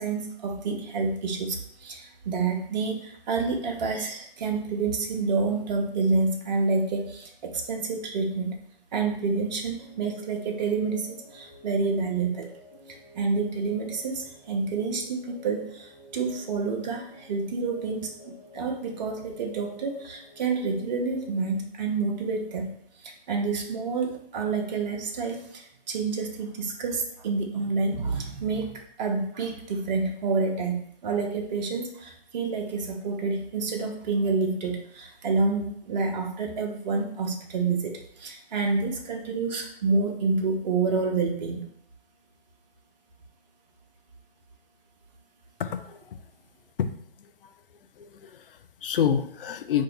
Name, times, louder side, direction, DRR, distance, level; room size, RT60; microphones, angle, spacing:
voice 1, 0.0-8.6 8.9-12.5 12.9-18.1 18.5-22.7 23.0-41.6, right 4 dB, 45° right, 2 dB, 0.6 m, -28 dB
sound 1, 9.8-21.5, left 1 dB, 25° left, 1.4 m, -51 dB
voice 2, 45.6-46.0 46.8-46.9 47.2-47.5 48.0-49.8, left 8 dB, 65° left, 9 dB, 0.4 m, -28 dB
2.6 x 2.5 x 4.2 m, 0.65 s
figure-of-eight pair, 130°, 31 cm